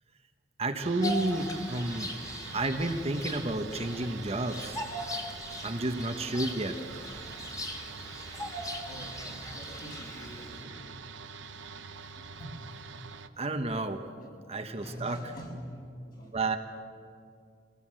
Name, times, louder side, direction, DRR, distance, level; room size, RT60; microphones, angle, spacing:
voice 1, 0.6-2.1 2.5-4.8 5.6-6.8 13.4-14.0 14.5-15.2 16.3-16.6, right 2 dB, 35° right, 5 dB, 1.2 m, -31 dB
sound 1, 0.8-13.3, right 5 dB, 85° right, 1.0 m, -45 dB
Bird vocalization bird call bird song, 1.0-10.6, left 1 dB, 20° left, 2.5 m, -40 dB
voice 2, 8.7-9.2 9.5-10.9 12.2-12.7 14.2-14.3 14.8-16.4, equal, 50° left, -2 dB, 7.2 m, -44 dB
25.0 x 18.5 x 7.7 m, 2.4 s
head